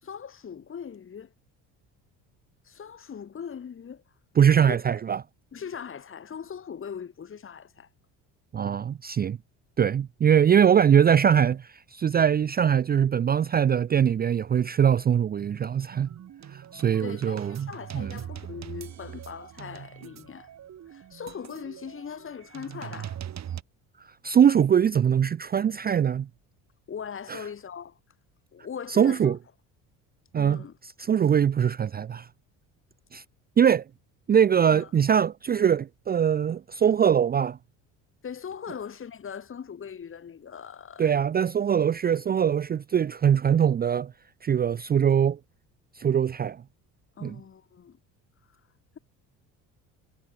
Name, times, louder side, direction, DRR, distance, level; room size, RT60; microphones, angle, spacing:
voice 1, 0.0-1.3 2.6-4.0 4.7-4.9 5.5-7.9 17.0-20.5 20.9-23.2 26.9-28.0 28.5-29.4 30.4-30.8 34.7-34.9 38.2-41.2 47.2-48.0 48.5-48.6, left 7 dB, 35° left, 3.1 m, -40 dB
voice 2, 4.4-5.2 8.5-9.4 9.8-16.1 16.5-17.7 17.9-18.1 24.2-26.3 27.3-27.4 28.9-29.4 30.3-30.6 31.0-32.3 33.1-33.2 33.6-33.8 34.3-37.6 41.0-44.1 44.4-45.4 46.0-46.6 47.2-47.4, right 8 dB, 25° right, 0.5 m, -22 dB
sound 1, 15.9-23.6, right 10 dB, 45° right, 3.5 m, -41 dB
cardioid pair, 100°, 36 cm